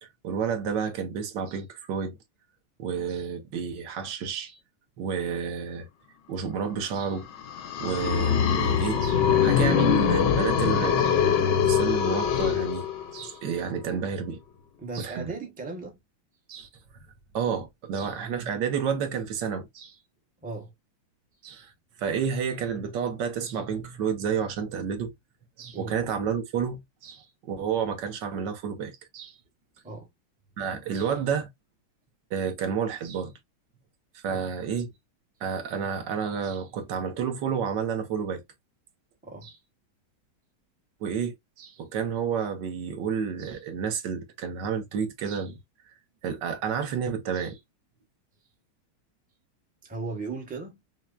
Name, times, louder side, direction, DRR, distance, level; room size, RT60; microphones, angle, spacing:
voice 1, 0.0-2.2 2.8-4.6 5.0-5.9 6.3-7.3 7.8-12.9 13.1-14.4 14.9-15.3 16.5-16.7 17.3-20.0 21.4-21.7 22.0-25.1 25.6-29.3 30.6-31.5 32.3-33.3 34.1-34.9 35.4-38.4 39.4-39.5 41.0-45.6 46.2-47.6, right 7 dB, 65° right, 1.4 m, -30 dB
sound 1, 7.4-13.3, left 8 dB, 65° left, 1.2 m, -23 dB
voice 2, 14.8-16.0 20.4-20.7 25.7-26.0 29.8-30.1 34.2-34.4 39.2-39.5 49.8-50.8, right 3 dB, 10° right, 0.6 m, -37 dB
5.8 x 2.2 x 2.4 m
omnidirectional pair, 2.2 m